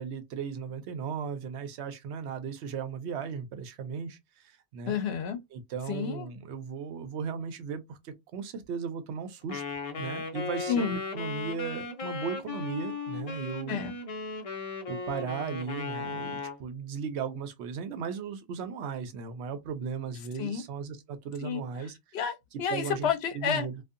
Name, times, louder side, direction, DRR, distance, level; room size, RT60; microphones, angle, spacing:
voice 1, 0.0-4.2 4.4-5.0 5.5-9.6 10.0-13.8 14.9-22.0 22.7-23.8, right 6 dB, 80° right, 0.9 m, -36 dB
voice 2, 4.9-5.4 5.9-6.3 10.7-11.0 13.7-13.9 20.4-20.6 21.4-21.6 22.1-23.7, left 7 dB, 70° left, 0.8 m, -30 dB
Wind instrument woodwind instrument, 9.5-16.6, left 4 dB, 45° left, 0.5 m, -36 dB
2.6 x 2.3 x 2.4 m
omnidirectional pair, 1.1 m